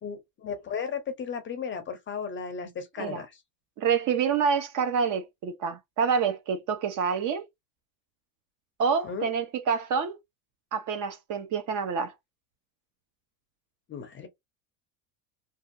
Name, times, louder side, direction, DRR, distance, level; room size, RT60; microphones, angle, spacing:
voice 1, 0.0-3.3 9.0-9.3 13.9-14.3, left 6 dB, 25° left, 0.6 m, -35 dB
voice 2, 3.8-7.5 8.8-10.2 10.7-12.1, right 6 dB, 40° right, 0.6 m, -27 dB
2.7 x 2.3 x 2.6 m
supercardioid pair, 120°, 49 cm